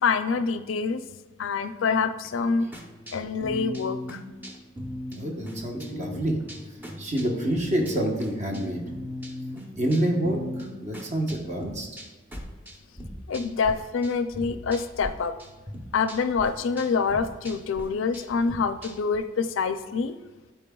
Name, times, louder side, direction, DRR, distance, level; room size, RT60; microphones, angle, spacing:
voice 1, 0.0-1.0 1.4-2.7 3.1-4.2 13.3-15.3 15.9-20.2, left 5 dB, 85° left, 11 dB, 0.4 m, -26 dB
sound 1, 2.7-13.7 14.0-15.1 15.4-19.2, equal, 10° right, 0.8 m, -39 dB
voice 2, 5.1-6.4 7.0-8.8 9.8-11.9, right 1 dB, 40° right, 1 dB, 1.0 m, -27 dB
10.5 x 4.5 x 2.3 m, 1.2 s
head